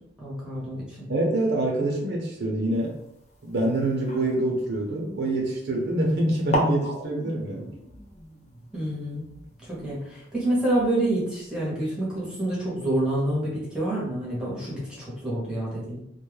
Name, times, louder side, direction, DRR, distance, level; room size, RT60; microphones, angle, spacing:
voice 1, 0.2-1.1 8.7-9.2 9.6-16.0, right 1 dB, 5° right, -7 dB, 0.8 m, -28 dB
voice 2, 1.1-3.0 3.4-7.7, right 1 dB, 65° right, -1 dB, 0.6 m, -25 dB
sound 1, 2.7-5.6 6.2-6.3 6.5-11.1, equal, 40° left, 0.6 m, -36 dB
2.2 x 2.1 x 3.1 m, 0.76 s
head